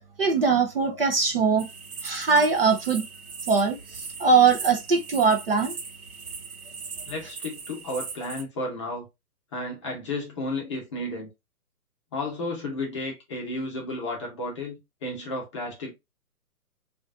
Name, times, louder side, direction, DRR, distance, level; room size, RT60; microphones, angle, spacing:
voice 1, 0.2-1.7 2.0-3.0 3.5-5.8, right 5 dB, 40° right, 0.6 m, -21 dB
sound 1, 1.6-8.4, right 5 dB, 65° right, 1.0 m, -39 dB
voice 2, 7.0-9.1 9.5-11.3 12.1-15.9, left 2 dB, 20° left, 0.7 m, -33 dB
4.9 x 2.5 x 2.4 m
figure-of-eight pair, 140°, 46 cm